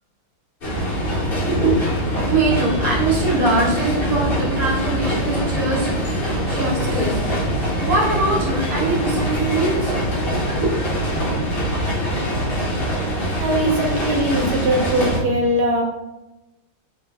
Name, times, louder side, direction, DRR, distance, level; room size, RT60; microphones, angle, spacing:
sound 1, 0.6-15.2, equal, 60° left, 0.5 m, -23 dB
voice 1, 1.4-9.9 10.6-10.9, right 2 dB, 55° right, -4 dB, 1.2 m, -23 dB
voice 2, 13.4-15.8, right 1 dB, 80° right, 0 dB, 1.4 m, -20 dB
3.2 x 2.4 x 2.3 m, 1.0 s
omnidirectional pair, 2.3 m